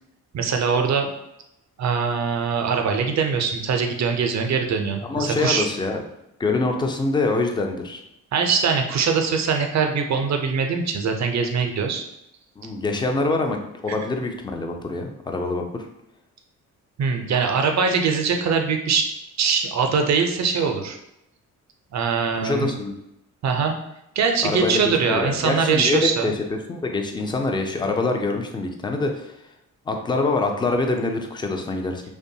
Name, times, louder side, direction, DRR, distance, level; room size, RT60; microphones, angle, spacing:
voice 1, 0.3-1.1 1.8-5.7 8.3-12.0 13.9-14.0 17.0-19.1 19.4-21.0 21.9-22.7 23.4-23.7 24.2-26.3, right 5 dB, 45° right, 4 dB, 0.5 m, -22 dB
voice 2, 5.0-6.0 6.4-8.0 12.6-15.8 22.4-22.9 24.4-26.3 26.7-29.3 29.9-32.0, left 3 dB, 15° left, 4 dB, 0.4 m, -25 dB
2.5 x 2.2 x 2.7 m, 0.84 s
supercardioid pair, 50°, 38 cm